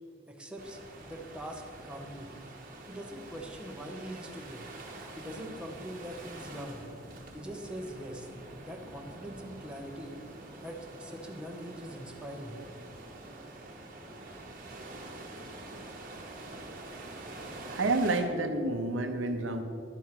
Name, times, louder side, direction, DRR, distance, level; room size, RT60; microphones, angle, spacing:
voice 1, 0.3-2.3 2.9-4.7 5.2-6.8 7.3-8.3 8.6-10.2 10.6-12.6, equal, 5° right, 0 dB, 0.8 m, -42 dB
sound 1, 0.6-18.2, right 2 dB, 45° right, 1.1 m, -46 dB
voice 2, 17.7-19.6, right 2 dB, 75° right, 7 dB, 0.7 m, -29 dB
10.5 x 4.6 x 5.8 m, 2.3 s
head